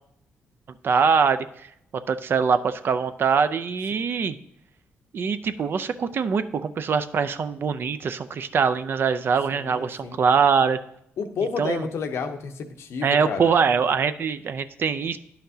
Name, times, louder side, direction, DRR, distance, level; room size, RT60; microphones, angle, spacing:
voice 1, 0.8-1.5 2.1-4.4 5.1-10.8 11.6-11.9 13.0-15.2, right 6 dB, 50° right, 11 dB, 0.4 m, -23 dB
voice 2, 9.5-10.2 11.2-13.5, left 5 dB, 70° left, 6 dB, 0.8 m, -31 dB
10.0 x 5.8 x 2.8 m, 0.74 s
cardioid pair, 90°, 5 cm